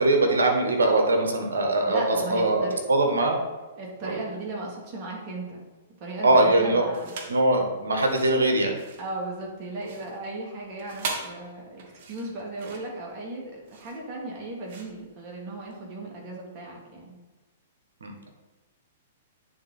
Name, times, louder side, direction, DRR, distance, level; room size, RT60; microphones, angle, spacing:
voice 1, 0.0-3.4 4.0-4.2 6.2-6.9 7.3-8.8 18.0-18.3, right 2 dB, 75° right, 3 dB, 1.3 m, -22 dB
voice 2, 1.9-2.8 3.8-5.7 6.0-7.1 9.0-11.8 12.1-17.1, right 2 dB, 40° right, -2 dB, 2.2 m, -36 dB
sound 1, 6.9-7.4 8.0-15.8, right 4 dB, 55° right, 1.2 m, -40 dB
9.3 x 3.7 x 4.1 m, 1.2 s
hypercardioid pair, 115°, 0 cm